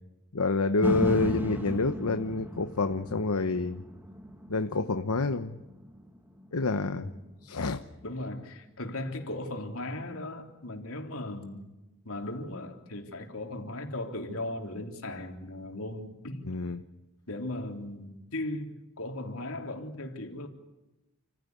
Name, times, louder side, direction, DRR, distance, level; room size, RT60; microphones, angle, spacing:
voice 1, 0.3-3.8 4.5-5.6 6.5-7.1 7.4-7.8 16.5-16.8, left 3 dB, 85° left, 8 dB, 1.0 m, -28 dB
sound 1, 0.8-9.0 9.5-9.6, equal, 10° right, 1.6 m, -37 dB
voice 2, 6.7-7.2 8.0-11.7 12.1-16.5 17.3-20.5, left 1 dB, 70° left, 3 dB, 3.4 m, -37 dB
28.5 x 15.5 x 9.5 m, 1.0 s
head